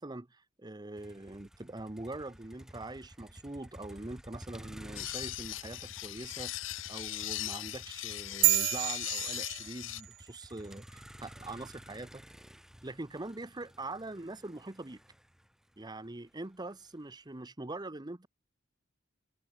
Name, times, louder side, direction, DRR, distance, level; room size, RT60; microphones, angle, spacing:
voice 1, 0.0-6.5 6.9-12.2 12.8-15.0 15.8-18.3, right 2 dB, 20° right, 0.9 m, -43 dB
Motor vehicle (road), 1.0-17.1, equal, 5° right, 2.3 m, -53 dB
sound 1, 5.0-10.0, left 16 dB, 75° left, 0.6 m, -39 dB
sound 2, 8.4-10.2, right 21 dB, 85° right, 0.3 m, -29 dB
head